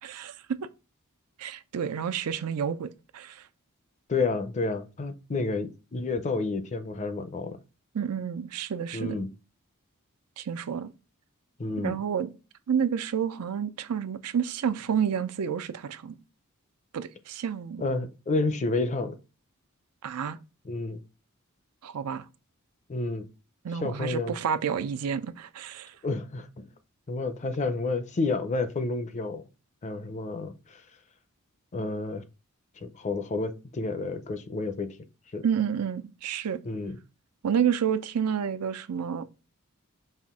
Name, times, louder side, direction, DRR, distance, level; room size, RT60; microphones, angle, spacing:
voice 1, 0.0-0.6 1.4-3.4 7.9-9.2 10.4-10.9 11.8-12.3 12.7-16.2 16.9-17.8 20.0-20.4 21.8-22.2 23.6-25.9 35.4-36.6 37.4-39.3, right 7 dB, 85° right, 0.5 m, -29 dB
voice 2, 4.1-7.6 8.9-9.3 11.6-12.0 17.8-19.2 20.7-21.0 22.9-23.3 23.8-24.4 26.0-26.7 27.1-29.4 29.8-30.8 31.7-32.2 32.8-34.9 35.3-35.4 36.7-37.0, left 3 dB, 30° left, 0.5 m, -30 dB
5.6 x 2.5 x 3.5 m
head